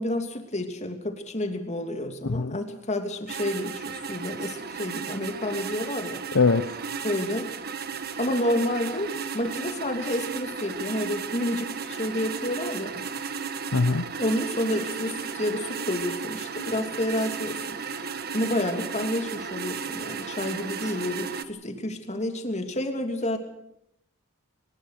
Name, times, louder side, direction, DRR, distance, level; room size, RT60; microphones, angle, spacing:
voice 1, 0.0-6.2 7.0-7.5 8.2-13.1 14.2-18.0 18.3-23.4, left 1 dB, 30° left, 6 dB, 2.9 m, -30 dB
voice 2, 2.2-2.6 6.3-6.7 13.7-14.1, left 4 dB, 65° left, 11 dB, 0.8 m, -22 dB
sound 1, 3.3-21.4, right 6 dB, 45° right, 1.5 m, -34 dB
23.0 x 20.5 x 6.6 m, 0.77 s
head